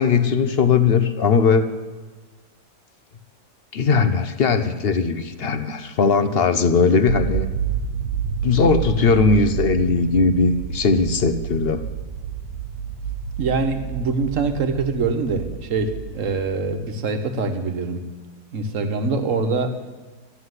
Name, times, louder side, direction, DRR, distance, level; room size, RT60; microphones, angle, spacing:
voice 1, 0.0-1.7 3.7-7.5 8.4-11.8, left 5 dB, 50° left, 10 dB, 0.8 m, -19 dB
sound 1, 7.1-16.9, right 7 dB, 90° right, 1.3 m, -29 dB
voice 2, 13.4-18.0 18.5-19.7, right 4 dB, 55° right, 7 dB, 1.5 m, -24 dB
13.0 x 8.3 x 9.6 m, 1.3 s
omnidirectional pair, 1.7 m